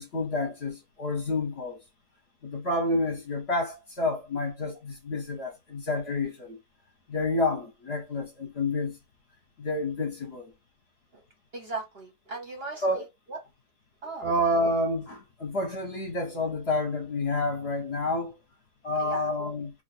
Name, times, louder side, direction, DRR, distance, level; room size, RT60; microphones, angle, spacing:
voice 1, 0.0-1.8 2.4-6.6 7.1-9.0 9.6-10.5 12.8-13.0 14.2-18.3 18.8-19.7, left 2 dB, 50° left, 0.9 m, -29 dB
voice 2, 11.5-13.0 13.3-13.4 14.0-14.3 19.0-19.3, right 3 dB, 50° right, 0.8 m, -38 dB
2.8 x 2.5 x 4.1 m
omnidirectional pair, 1.7 m